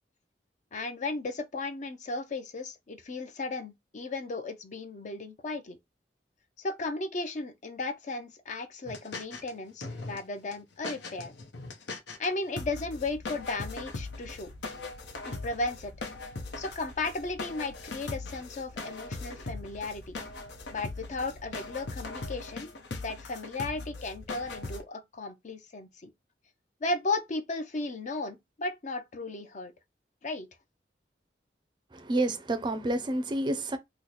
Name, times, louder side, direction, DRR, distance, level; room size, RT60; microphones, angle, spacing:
voice 1, 0.7-5.8 6.6-11.3 12.2-14.5 15.3-15.9 16.6-20.2 20.7-22.7 23.0-26.1 26.8-29.7 30.2-30.5, left 3 dB, 45° left, 0.5 m, -35 dB
sound 1, 8.9-9.5 9.8-10.2 10.5-10.6 10.8-12.3 12.6-24.8, left 3 dB, 90° left, 0.7 m, -40 dB
voice 2, 31.9-33.8, right 1 dB, 25° right, 0.4 m, -29 dB
3.0 x 2.0 x 3.9 m
head